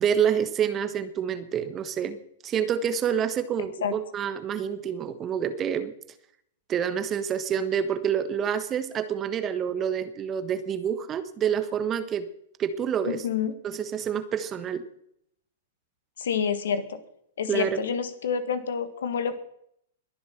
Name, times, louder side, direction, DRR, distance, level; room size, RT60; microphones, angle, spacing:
voice 1, 0.0-2.2 2.4-5.9 6.7-12.3 12.6-13.2 13.6-14.8 17.5-17.8, right 8 dB, 25° right, 10 dB, 1.3 m, -27 dB
voice 2, 13.1-13.5 16.2-17.0 17.4-19.4, left 7 dB, 65° left, 11 dB, 1.7 m, -28 dB
21.5 x 7.2 x 6.0 m, 0.70 s
figure-of-eight pair, 105°, 0 cm